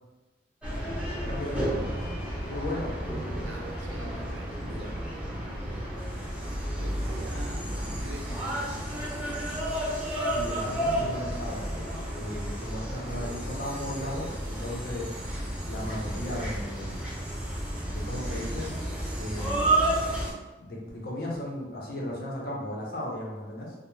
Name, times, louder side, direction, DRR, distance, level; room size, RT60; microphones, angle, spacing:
sound 1, 0.6-20.3, right 1 dB, 5° right, 0.6 m, -31 dB
voice 1, 1.2-1.7 2.5-2.9 4.0-4.2 10.3-11.7 12.1-15.1 15.7-17.0 17.9-18.7 19.1-20.0 20.6-23.7, left 1 dB, 60° left, -3 dB, 0.6 m, -36 dB
voice 2, 3.4-5.0 5.6-6.3 6.8-9.4 17.8-17.9 19.4-19.6, right 1 dB, 80° right, 2 dB, 0.4 m, -46 dB
2.2 x 2.1 x 3.0 m, 1.2 s
head